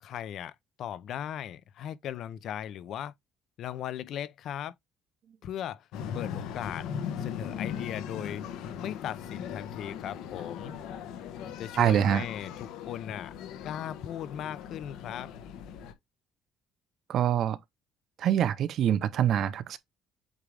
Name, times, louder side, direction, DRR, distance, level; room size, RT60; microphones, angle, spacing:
voice 1, 0.0-3.1 3.6-4.7 5.4-5.9 6.1-6.9 7.2-8.4 8.8-10.8 11.6-13.3 13.6-15.3, left 10 dB, 55° left, 0.5 m, -38 dB
sound 1, 5.9-15.9, left 8 dB, 80° left, 1.2 m, -39 dB
voice 2, 11.8-12.3 17.1-17.6 18.2-19.8, right 10 dB, 50° right, 0.7 m, -25 dB
8.2 x 3.6 x 3.3 m
cardioid pair, 165°, 0 cm